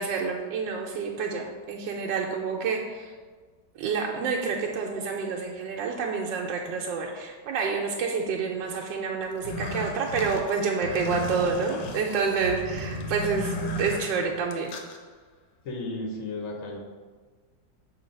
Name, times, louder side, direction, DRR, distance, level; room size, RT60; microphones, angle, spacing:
voice 1, 0.0-3.1 3.8-14.7, right 5 dB, 90° right, 0 dB, 1.3 m, -28 dB
sound 1, 9.3-15.0, left 1 dB, 80° left, 1.4 m, -34 dB
voice 2, 15.6-16.8, left 2 dB, 55° left, 1 dB, 1.2 m, -34 dB
6.5 x 3.1 x 5.2 m, 1.5 s
omnidirectional pair, 1.9 m